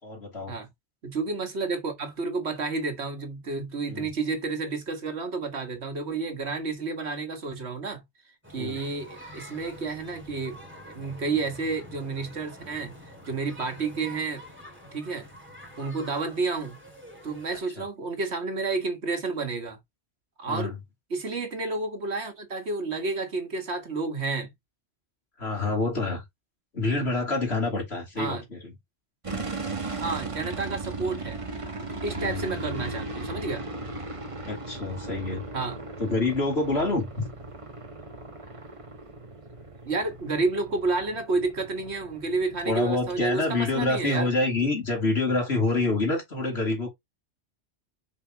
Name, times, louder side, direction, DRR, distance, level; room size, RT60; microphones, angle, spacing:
voice 1, 0.0-0.5 3.9-4.1 8.5-8.8 17.8-17.9 20.5-20.8 25.4-26.2 26.7-28.7 32.2-32.5 34.4-35.4 36.0-37.3 42.6-46.9, left 2 dB, 65° left, 3.3 m, -27 dB
voice 2, 1.0-8.0 8.5-10.6 10.9-14.5 14.9-15.3 15.8-16.8 17.2-19.8 20.4-20.7 21.1-24.5 28.2-28.4 29.9-31.4 32.0-33.6 35.5-35.8 39.8-44.3, right 3 dB, 70° right, 1.9 m, -30 dB
sound 1, 8.4-17.6, equal, 10° right, 2.5 m, -46 dB
sound 2, 29.2-44.0, right 2 dB, 30° right, 1.3 m, -37 dB
6.9 x 5.7 x 2.9 m
omnidirectional pair, 1.2 m